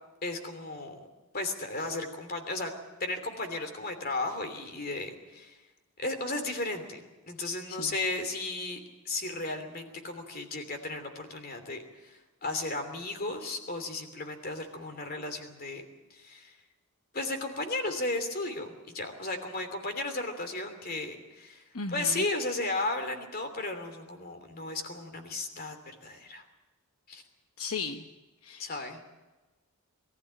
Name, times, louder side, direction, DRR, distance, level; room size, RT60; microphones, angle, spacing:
voice 1, 0.2-1.0 1.3-2.7 3.0-5.6 6.0-8.8 9.0-15.8 16.1-16.6 17.1-26.4 27.1-27.2 28.6-29.0, left 2 dB, 40° left, 7 dB, 3.0 m, -35 dB
voice 2, 21.7-22.2 27.6-28.1 28.4-28.7, left 4 dB, 75° left, 6 dB, 1.1 m, -36 dB
23.0 x 14.5 x 8.9 m, 1.2 s
head